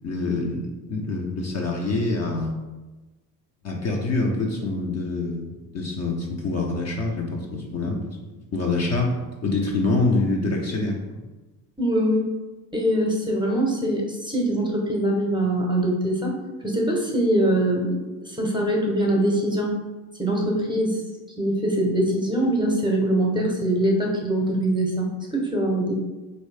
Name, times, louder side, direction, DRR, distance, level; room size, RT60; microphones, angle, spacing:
voice 1, 0.0-2.6 3.6-8.2 8.5-9.1 9.4-11.2, left 3 dB, 35° left, 0 dB, 0.7 m, -26 dB
voice 2, 11.8-12.3 12.7-16.3 16.6-19.7 20.2-21.0 21.4-25.9, right 1 dB, 10° right, -1 dB, 0.8 m, -23 dB
3.0 x 2.7 x 3.3 m, 1.2 s
hypercardioid pair, 65°, 47 cm